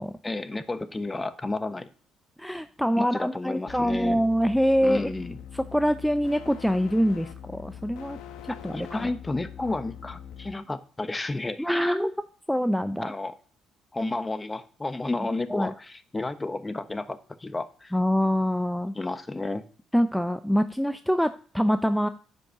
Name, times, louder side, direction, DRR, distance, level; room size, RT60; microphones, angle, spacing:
voice 1, 0.2-1.9 3.0-4.2 4.8-5.4 8.7-11.7 13.0-13.3 13.9-17.9 18.9-19.6, left 2 dB, 20° left, 12 dB, 1.1 m, -31 dB
voice 2, 2.4-5.1 5.5-8.2 8.4-9.1 11.6-12.1 12.5-13.1 15.5-15.7 17.9-18.9 19.9-22.1, equal, ahead, 10 dB, 0.6 m, -25 dB
sound 1, 3.7-10.5, left 9 dB, 75° left, 1.0 m, -43 dB
9.9 x 5.4 x 6.9 m, 0.43 s
hypercardioid pair, 55°, 0 cm